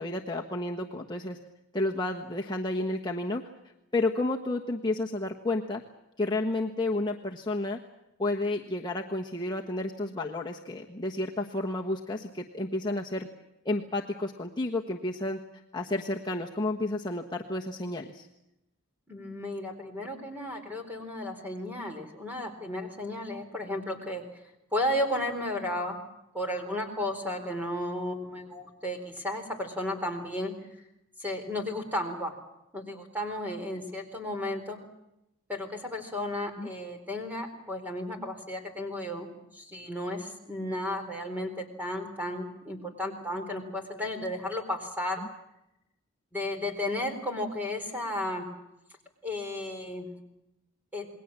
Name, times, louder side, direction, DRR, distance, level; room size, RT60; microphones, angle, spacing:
voice 1, 0.0-1.4 1.7-3.5 3.9-5.8 6.2-7.8 8.2-13.3 13.6-15.4 15.7-18.3 36.6-36.7, left 2 dB, 20° left, -1 dB, 1.3 m, -31 dB
voice 2, 19.1-24.2 24.7-26.0 26.3-30.5 31.2-32.4 32.7-34.8 35.5-45.2 46.3-48.5 49.2-50.1 50.9-51.1, left 1 dB, 10° right, 4 dB, 3.9 m, -33 dB
28.0 x 21.0 x 7.5 m, 0.88 s
head